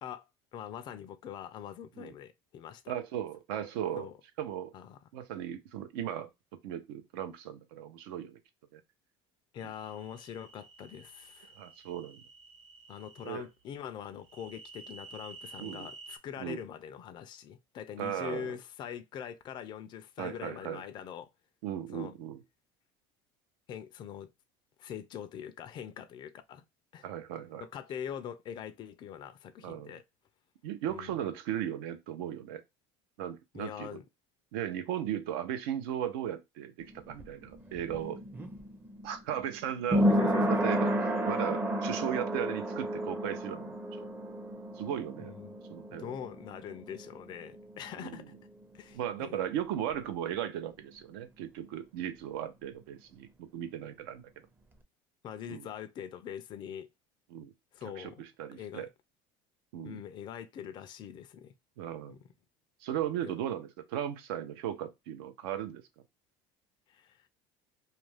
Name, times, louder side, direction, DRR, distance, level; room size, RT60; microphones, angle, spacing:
voice 1, 0.5-2.9 4.0-4.1 4.7-5.0 9.5-11.6 12.9-21.3 21.9-22.1 23.7-24.3 24.8-26.6 26.9-27.1 27.6-30.0 30.9-31.1 33.5-34.0 40.0-40.6 45.2-45.6 46.0-48.4 48.7-49.4 55.2-56.9 57.7-58.2 58.5-58.9 59.8-61.5 62.1-62.2 63.2-63.4 66.9-67.2, left 9 dB, 40° left, 0.4 m, -43 dB
voice 2, 2.9-4.1 4.4-4.7 5.1-6.3 6.6-8.4 8.7-8.8 9.6-9.7 11.6-12.2 13.2-13.4 15.6-15.9 16.4-16.6 18.0-18.6 20.2-20.8 21.6-22.4 27.0-27.7 29.6-29.9 30.6-32.6 33.2-34.0 34.5-38.2 39.0-40.1 40.6-40.9 41.2-44.1 44.8-45.3 45.7-46.1 48.0-48.3 48.9-54.2 55.5-55.7 57.3-57.5 58.0-58.9 59.7-60.0 61.8-62.2 62.8-65.8, right 10 dB, 85° right, 0.6 m, -37 dB
sound 1, 9.6-13.3 14.2-16.2, right 4 dB, 55° right, 0.9 m, -51 dB
sound 2, 36.8-48.3 48.6-48.7, equal, 15° right, 0.5 m, -32 dB
2.5 x 2.2 x 3.1 m
cardioid pair, 125°, 12 cm